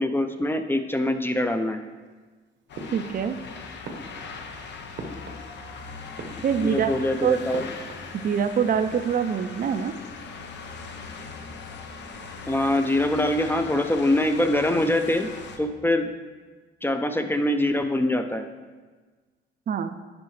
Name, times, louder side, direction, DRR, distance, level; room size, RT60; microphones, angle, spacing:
voice 1, 0.0-1.8 6.6-7.6 12.5-15.3 15.6-16.1 16.8-18.4, left 1 dB, 10° left, 7 dB, 0.6 m, -24 dB
sound 1, 2.7-15.6, left 4 dB, 60° left, 0.8 m, -40 dB
sound 2, 2.7-3.5 3.8-5.8 6.1-6.9 7.5-8.5 8.8-9.3, right 2 dB, 65° right, 1.0 m, -42 dB
voice 2, 2.9-3.4 6.4-6.9 7.2-7.4 8.2-9.9 19.7-20.0, right 7 dB, 45° right, 10 dB, 0.5 m, -24 dB
10.5 x 5.2 x 3.2 m, 1.4 s
cardioid pair, 90°, 20 cm